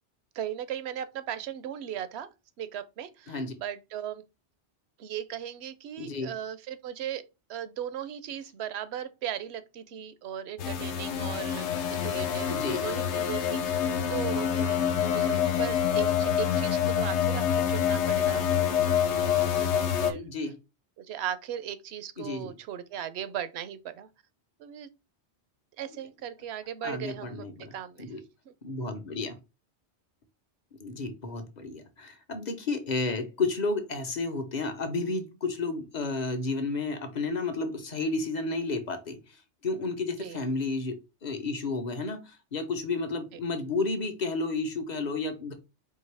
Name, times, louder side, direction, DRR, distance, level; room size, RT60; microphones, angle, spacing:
voice 1, 0.3-2.3 2.6-4.2 5.0-7.2 7.5-13.8 14.1-18.4 18.8-19.2 19.4-20.3 21.0-24.1 24.6-24.9 25.8-28.1 28.5-28.6 40.2-40.4, right 10 dB, 75° right, 0.8 m, -37 dB
voice 2, 6.0-6.3 12.5-12.8 20.1-20.5 22.2-22.5 26.8-28.2 28.6-29.4 30.8-39.2 39.6-40.9 41.2-45.5, left 3 dB, 45° left, 0.8 m, -32 dB
sound 1, 10.6-20.1, left 8 dB, 80° left, 0.9 m, -26 dB
4.5 x 2.8 x 3.3 m
omnidirectional pair, 1.1 m